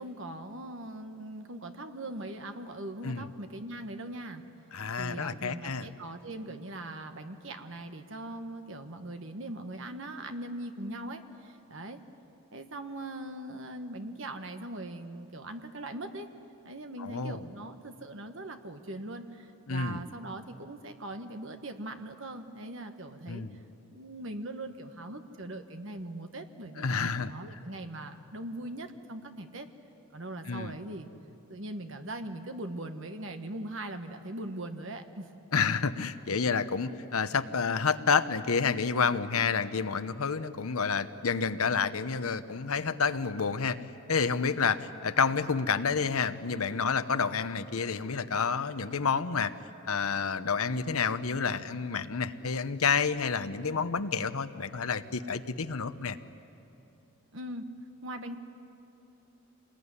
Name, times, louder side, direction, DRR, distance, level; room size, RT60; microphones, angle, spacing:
voice 1, 0.0-4.4 5.0-12.0 12.5-16.3 16.6-23.4 23.9-29.7 30.1-31.1 31.5-35.3 57.3-57.6 58.0-58.4, right 1 dB, 60° right, 6 dB, 1.5 m, -40 dB
voice 2, 4.7-5.9 17.0-17.5 19.7-20.0 23.3-23.6 26.8-27.3 30.5-30.7 35.5-43.8 44.1-49.5 49.8-56.2, left 5 dB, 80° left, 11 dB, 0.9 m, -29 dB
26.5 x 20.5 x 9.8 m, 2.9 s
head